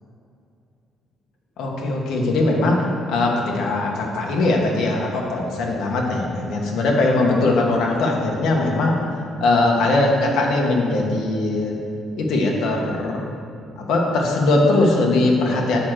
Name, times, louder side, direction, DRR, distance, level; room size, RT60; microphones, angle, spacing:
voice 1, 1.6-9.0 9.4-11.8 12.2-13.2 13.8-15.8, left 2 dB, 65° left, 0 dB, 1.2 m, -20 dB
7.3 x 4.4 x 6.3 m, 2.5 s
cardioid pair, 165°, 0 cm